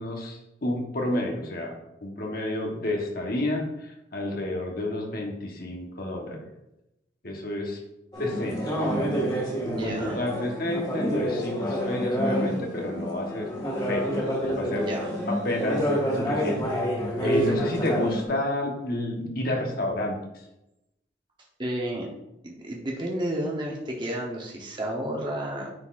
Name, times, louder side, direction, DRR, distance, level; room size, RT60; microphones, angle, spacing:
voice 1, 0.0-1.7 2.0-6.4 7.2-7.8 8.2-13.5 13.9-14.1 14.6-14.9 15.3-15.9 16.1-16.6 17.2-20.2, left 1 dB, 50° left, 0 dB, 1.2 m, -30 dB
sound 1, 8.1-18.3, equal, 25° left, 1.8 m, -28 dB
voice 2, 9.6-10.2 14.7-15.1 17.2-17.4 21.6-22.1 22.4-25.7, right 1 dB, 25° right, -1 dB, 0.9 m, -31 dB
9.6 x 4.1 x 2.5 m, 0.89 s
head